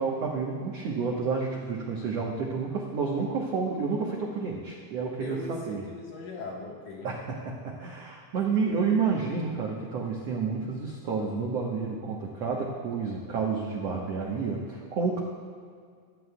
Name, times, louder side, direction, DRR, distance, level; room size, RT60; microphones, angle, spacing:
voice 1, 0.0-5.8 7.0-15.2, right 5 dB, 80° right, -2 dB, 1.4 m, -30 dB
voice 2, 5.2-7.1, left 3 dB, 60° left, -2 dB, 2.5 m, -39 dB
22.0 x 11.5 x 2.3 m, 2.1 s
omnidirectional pair, 4.7 m